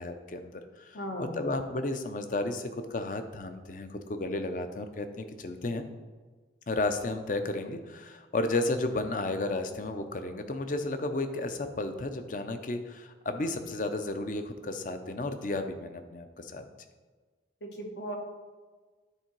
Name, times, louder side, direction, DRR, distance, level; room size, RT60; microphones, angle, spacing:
voice 1, 0.0-5.8 6.7-16.7, left 2 dB, 45° left, 8 dB, 0.6 m, -33 dB
voice 2, 0.9-1.4 17.6-18.1, equal, 75° left, 2 dB, 1.2 m, -37 dB
9.9 x 3.8 x 4.6 m, 1.4 s
head